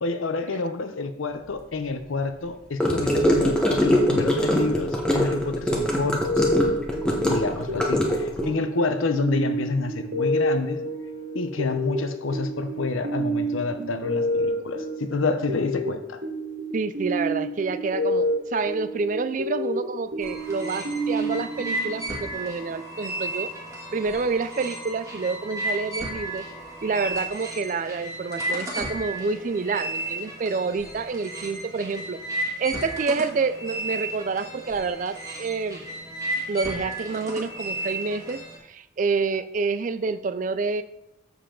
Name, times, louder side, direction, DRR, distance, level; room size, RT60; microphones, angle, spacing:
voice 1, 0.0-6.4 7.2-10.8 11.3-16.2, left 3 dB, 85° left, 9 dB, 0.7 m, -28 dB
Gurgling / Car passing by / Sink (filling or washing), 2.8-8.5, equal, 5° left, 1.0 m, -22 dB
sound 1, 6.2-22.6, equal, 60° right, 2.2 m, -29 dB
voice 2, 16.7-23.5 23.9-26.5 26.8-32.2 32.6-35.9 36.5-38.4 38.7-40.8, right 4 dB, 40° right, 13 dB, 0.3 m, -28 dB
sound 2, 20.2-38.6, right 1 dB, 15° right, 1.6 m, -34 dB
7.4 x 6.7 x 3.8 m, 0.85 s
head